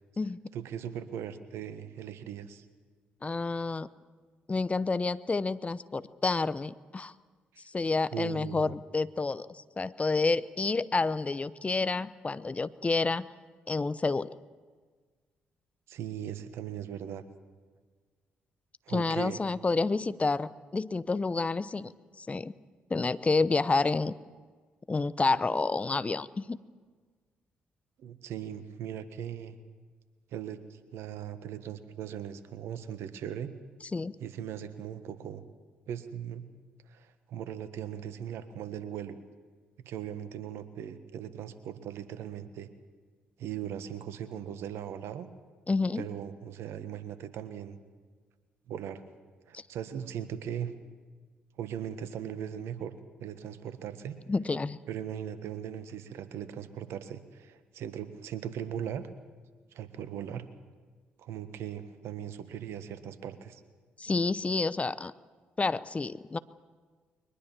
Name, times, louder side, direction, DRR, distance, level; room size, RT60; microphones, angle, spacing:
voice 1, 0.5-2.7 7.5-7.6 8.1-8.7 15.9-17.2 18.9-19.4 28.0-29.6 30.3-33.5 34.2-35.4 35.9-36.5 36.9-39.2 39.8-42.7 43.4-45.3 45.9-47.8 48.7-49.0 49.5-50.7 51.6-54.2 54.9-59.0 59.7-60.4 61.2-63.6, right 9 dB, 70° right, 11 dB, 1.5 m, -39 dB
voice 2, 3.2-3.9 4.5-7.1 7.6-13.3 13.7-14.4 18.9-21.9 22.2-22.5 22.9-24.1 24.9-26.6 33.9-34.1 45.7-46.1 49.5-49.6 54.3-54.8 64.0-65.1 65.6-66.4, left 3 dB, 30° left, 16 dB, 0.8 m, -29 dB
22.5 x 20.5 x 7.3 m, 1.5 s
hypercardioid pair, 45°, 5 cm